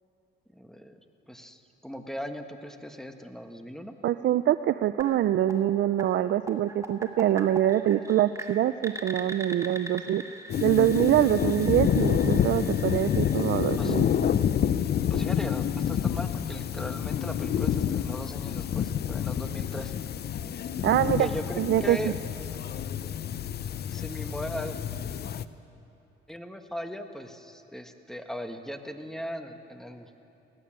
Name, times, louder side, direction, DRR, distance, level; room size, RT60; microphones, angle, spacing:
voice 1, 0.5-1.0 1.3-4.0 13.8-14.1 15.0-19.9 21.2-22.1 23.9-24.8 26.3-30.1, equal, ahead, 6 dB, 1.5 m, -38 dB
voice 2, 4.0-10.2 10.6-14.3 20.8-21.3 21.6-22.0, right 12 dB, 65° right, 12 dB, 0.5 m, -24 dB
sound 1, 5.0-14.8, right 1 dB, 15° right, 2.1 m, -43 dB
sound 2, 10.5-25.4, left 9 dB, 55° left, 0.7 m, -28 dB
24.0 x 17.0 x 7.5 m, 2.8 s
cardioid pair, 90°, 20 cm